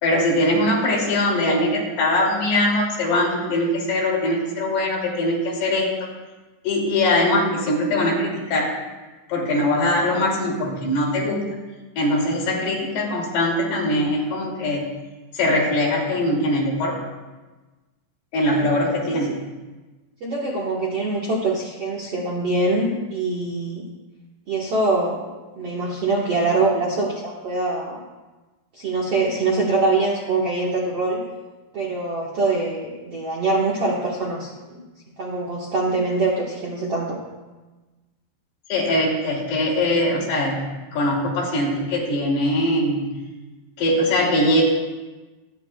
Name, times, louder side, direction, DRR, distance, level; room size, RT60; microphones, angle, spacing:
voice 1, 0.0-5.9 6.6-8.7 9.3-11.5 12.0-14.9 15.3-17.0 18.3-19.3 38.7-40.7 40.9-43.1 43.8-44.6, left 1 dB, 70° left, -3 dB, 4.8 m, -21 dB
voice 2, 20.2-23.8 24.5-25.2 25.6-28.0 28.7-31.2 31.7-34.8 35.2-37.2, right 3 dB, 60° right, -4 dB, 1.6 m, -24 dB
25.5 x 10.5 x 2.3 m, 1.2 s
omnidirectional pair, 4.9 m